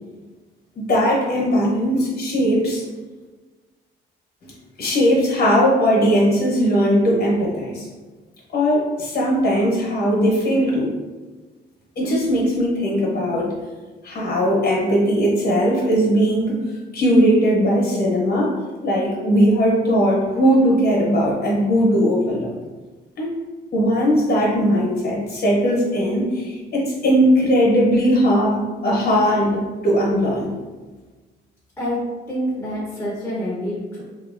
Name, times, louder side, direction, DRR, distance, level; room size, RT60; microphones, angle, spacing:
voice 1, 0.7-2.8 4.8-7.9 8.5-10.9 12.0-13.5 14.0-16.6 16.9-18.5 18.8-22.5 23.2-23.3 23.7-30.5, equal, 55° left, -3 dB, 0.9 m, -19 dB
voice 2, 32.3-34.0, equal, 10° left, -6 dB, 0.7 m, -27 dB
2.8 x 2.4 x 2.4 m, 1.3 s
cardioid pair, 90°, 20 cm